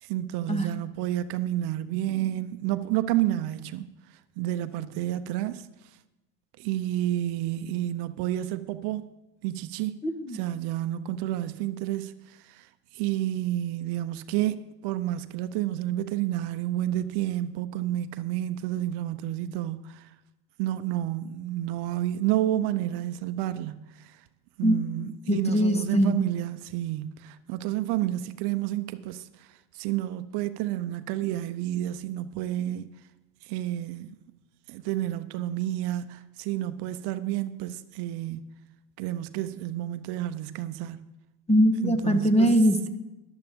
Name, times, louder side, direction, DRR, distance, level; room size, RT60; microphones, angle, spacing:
voice 1, 0.0-5.7 6.6-9.1 9.4-10.0 10.3-20.1 20.6-24.2 24.6-32.9 33.4-34.1 34.7-38.5 39.0-41.0 41.8-42.6, right 13 dB, 55° right, 0.7 m, -30 dB
voice 2, 10.0-10.4 24.6-24.8 25.3-26.2 41.5-42.9, equal, 15° left, 1.1 m, -22 dB
13.5 x 12.0 x 3.6 m
hypercardioid pair, 95°, 49 cm